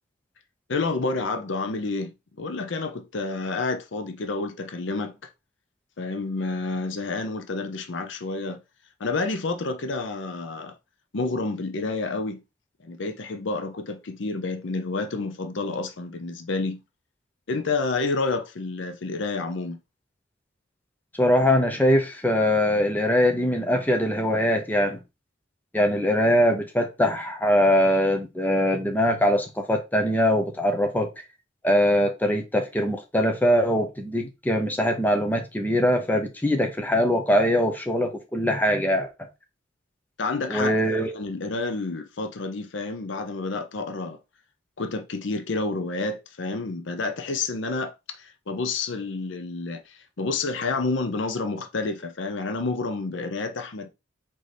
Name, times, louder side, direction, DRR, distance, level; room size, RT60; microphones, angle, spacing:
voice 1, 0.7-5.2 6.0-8.6 9.0-10.8 11.1-12.4 12.8-16.8 17.5-19.8 40.2-40.8 41.1-44.2 44.8-53.9, left 3 dB, 65° left, 0.7 m, -29 dB
voice 2, 21.2-25.0 25.7-31.1 31.6-39.1 40.5-41.1, equal, 10° left, 0.7 m, -22 dB
4.0 x 3.7 x 3.3 m
head